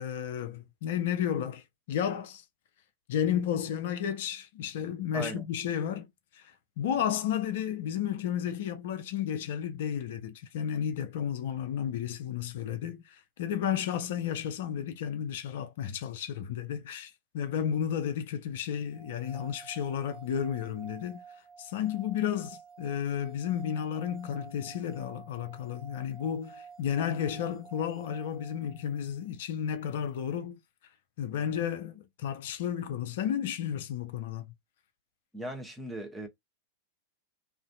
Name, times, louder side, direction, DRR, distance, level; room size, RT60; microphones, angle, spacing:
voice 1, 0.0-2.4 3.1-6.1 6.3-21.2 21.6-30.6 31.2-34.5, left 9 dB, 55° left, 0.4 m, -32 dB
sound 1, 18.9-29.0, right 6 dB, 35° right, 1.1 m, -50 dB
voice 2, 35.3-36.3, right 1 dB, 5° right, 0.7 m, -37 dB
2.5 x 2.4 x 2.2 m
figure-of-eight pair, 90°, 0 cm